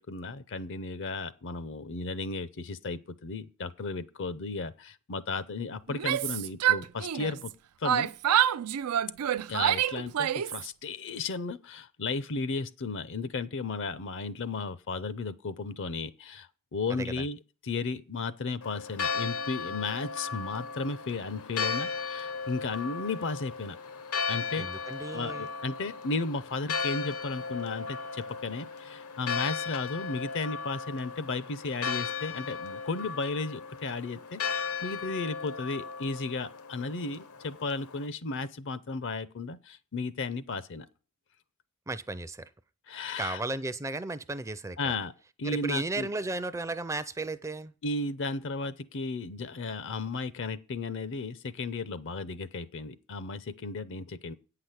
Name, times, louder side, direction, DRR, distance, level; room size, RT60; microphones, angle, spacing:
voice 1, 0.0-7.5 7.8-8.1 9.5-23.8 24.3-24.7 25.1-40.9 42.9-43.4 44.8-45.1 45.4-46.1 47.8-54.3, left 3 dB, 55° left, 0.6 m, -34 dB
Yell, 5.9-7.5 7.8-10.7, right 10 dB, 90° right, 0.4 m, -27 dB
Church bell, 18.6-38.0, left 5 dB, 80° left, 1.0 m, -36 dB
voice 2, 24.6-25.5 41.9-42.5 43.2-44.8 45.4-47.7, right 2 dB, 15° right, 0.4 m, -34 dB
8.8 x 5.9 x 8.0 m
head